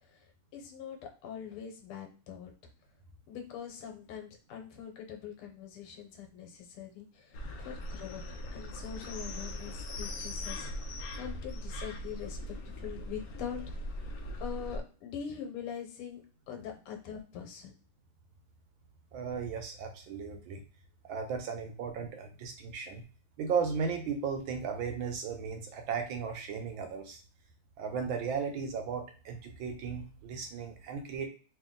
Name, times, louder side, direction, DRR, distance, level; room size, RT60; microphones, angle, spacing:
voice 1, 0.5-2.5 3.3-8.2 8.5-13.6 14.0-14.1 14.4-16.2 16.5-17.8, left 8 dB, 90° left, 4 dB, 1.7 m, -43 dB
sound 1, 7.3-14.8, left 1 dB, 75° left, 0.8 m, -40 dB
voice 2, 19.1-20.6 21.1-23.0 23.4-27.2 27.8-31.3, right 6 dB, 75° right, 5 dB, 1.3 m, -35 dB
3.3 x 2.7 x 3.7 m, 0.38 s
omnidirectional pair, 2.4 m